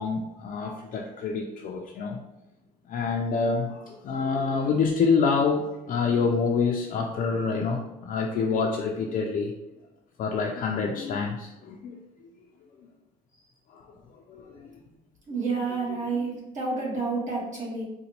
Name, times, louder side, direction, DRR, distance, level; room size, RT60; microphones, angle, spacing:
voice 1, 0.0-2.2 2.9-9.5 10.2-12.0 13.7-14.7 15.5-16.2, left 5 dB, 55° left, 0 dB, 0.4 m, -27 dB
voice 2, 15.3-17.8, right 4 dB, 45° right, -4 dB, 1.4 m, -29 dB
3.9 x 2.1 x 2.8 m, 0.95 s
cardioid pair, 110°, 17 cm